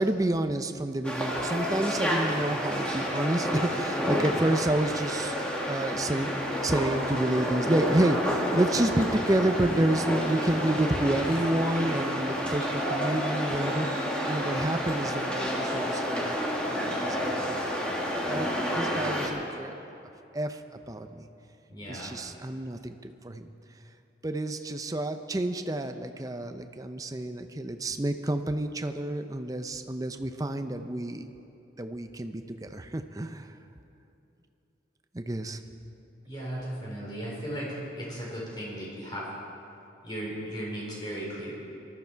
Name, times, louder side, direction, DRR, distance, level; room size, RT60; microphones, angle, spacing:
voice 1, 0.0-16.4 16.7-17.6 18.3-19.7 20.3-20.6 20.9-21.2 21.9-23.4 24.2-31.3 31.8-33.5 35.1-35.6, right 1 dB, 20° right, 7 dB, 0.6 m, -29 dB
sound 1, 1.0-19.3, equal, 5° left, 1.8 m, -30 dB
voice 2, 21.7-22.1 36.2-39.2 40.0-41.5, equal, 25° left, -4 dB, 4.1 m, -36 dB
20.0 x 13.0 x 4.6 m, 2.8 s
head